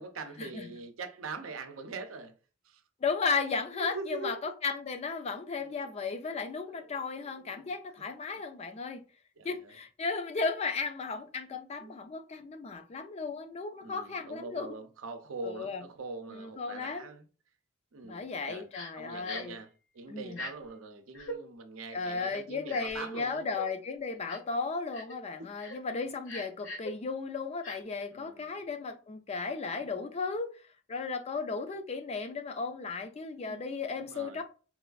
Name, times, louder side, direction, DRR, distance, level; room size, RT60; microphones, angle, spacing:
voice 1, 0.0-2.3 2.6-2.8 3.8-4.4 5.6-5.9 6.3-7.7 8.0-8.1 8.6-8.7 9.4-9.7 11.8-11.9 13.8-17.2 17.9-18.7 18.9-19.7 19.9-23.5 25.4-25.5 28.1-28.6 29.8-30.1 33.3-33.6 34.0-34.4, right 3 dB, 80° right, 0.6 m, -43 dB
voice 2, 3.0-9.0 9.4-14.7 15.4-15.8 16.3-17.1 18.0-19.5 20.1-20.4 21.9-30.5 30.9-34.4, left 4 dB, 30° left, 0.4 m, -35 dB
Crying sobbing, 18.7-18.9 19.2-19.6 20.3-20.5 21.1-21.4 22.3-23.0 23.5-23.7 24.3-24.5 24.9-25.2 25.6-25.8 26.2-26.9 27.6-27.8, left 1 dB, 65° left, 0.8 m, -40 dB
4.1 x 2.4 x 2.3 m
head